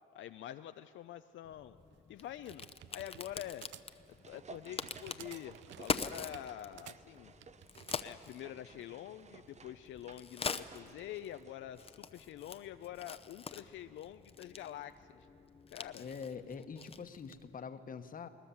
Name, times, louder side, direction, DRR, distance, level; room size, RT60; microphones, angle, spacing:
voice 1, 0.1-1.8 2.1-2.7 2.9-3.7 4.2-7.3 8.0-15.3 15.7-16.1, left 11 dB, 75° left, 9 dB, 0.5 m, -46 dB
Crack, 1.4-17.5, left 5 dB, 30° left, 0.7 m, -45 dB
sound 1, 1.9-8.0, right 13 dB, 70° right, 0.4 m, -54 dB
sound 2, 3.7-12.3 12.5-12.6, right 5 dB, 35° right, 0.7 m, -56 dB
voice 2, 16.0-18.3, left 6 dB, 45° left, 9 dB, 1.2 m, -44 dB
21.0 x 20.0 x 7.1 m, 2.5 s
cardioid pair, 90°, 20 cm